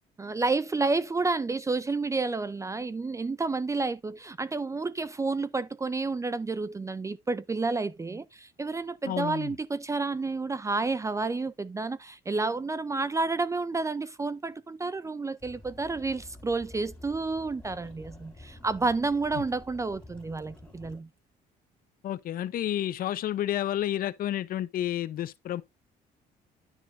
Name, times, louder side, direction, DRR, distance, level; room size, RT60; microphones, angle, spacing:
voice 1, 0.2-21.1, right 3 dB, 20° right, 0.5 m, -30 dB
voice 2, 9.0-9.5 22.0-25.6, left 12 dB, 60° left, 0.8 m, -30 dB
sound 1, 15.4-21.0, left 1 dB, 5° left, 4.1 m, -49 dB
10.0 x 6.2 x 2.6 m
cardioid pair, 110°, 17 cm